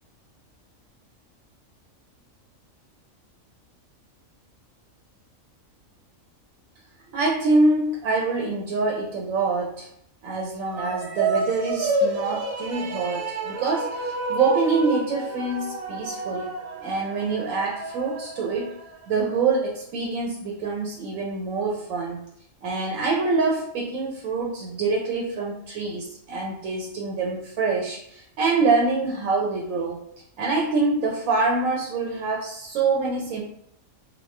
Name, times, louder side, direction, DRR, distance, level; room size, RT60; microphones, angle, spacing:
voice 1, 7.1-9.9 10.2-16.5 16.8-18.8 19.1-22.2 22.6-30.0 30.4-33.4, right 3 dB, 85° right, -1 dB, 1.0 m, -25 dB
sound 1, 10.7-19.2, right 2 dB, 60° right, 0.8 m, -30 dB
3.1 x 2.4 x 3.1 m, 0.72 s
omnidirectional pair, 1.4 m